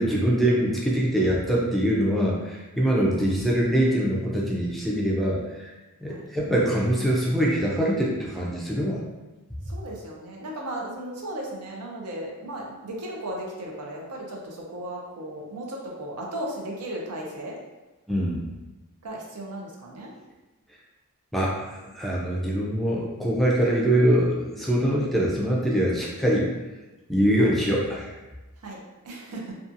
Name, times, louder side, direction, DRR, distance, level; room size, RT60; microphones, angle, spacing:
voice 1, 0.0-5.7 6.0-9.0 18.1-18.4 21.3-26.5 27.1-28.1, right 1 dB, ahead, -4 dB, 0.4 m, -23 dB
voice 2, 9.7-17.6 19.0-20.1 27.4-27.5 28.6-28.8 29.0-29.6, right 1 dB, 85° right, -2 dB, 0.6 m, -36 dB
2.6 x 2.3 x 2.5 m, 1.1 s
head